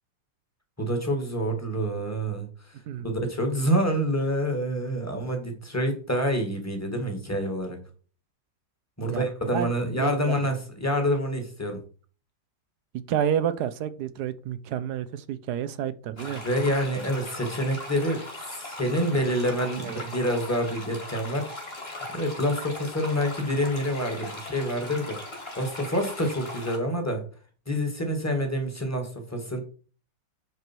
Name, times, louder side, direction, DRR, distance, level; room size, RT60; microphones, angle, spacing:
voice 1, 0.8-7.8 9.0-11.8 16.3-18.2 18.5-21.6 22.1-25.2 25.6-27.2 27.7-29.6, equal, 10° left, 4 dB, 1.9 m, -27 dB
voice 2, 9.5-10.3 12.9-16.4 19.8-20.0, right 9 dB, 70° right, 13 dB, 1.1 m, -30 dB
sound 1, 16.2-26.8, left 2 dB, 35° left, 2.9 m, -39 dB
10.0 x 4.7 x 4.5 m, 0.40 s
omnidirectional pair, 1.9 m